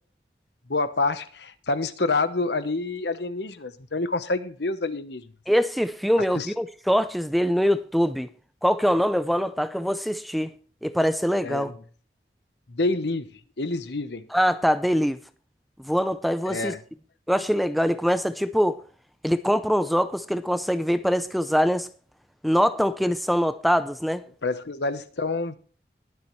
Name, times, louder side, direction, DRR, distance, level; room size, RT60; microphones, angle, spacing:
voice 1, 0.7-5.3 6.3-6.5 11.4-11.8 12.7-14.3 16.4-16.8 24.4-25.6, left 3 dB, 80° left, 1.0 m, -28 dB
voice 2, 5.5-8.3 8.6-10.5 10.8-11.7 14.3-15.2 15.8-16.7 17.3-18.8 19.2-21.9 22.4-24.2, equal, ahead, 0.5 m, -23 dB
21.5 x 7.1 x 3.2 m
head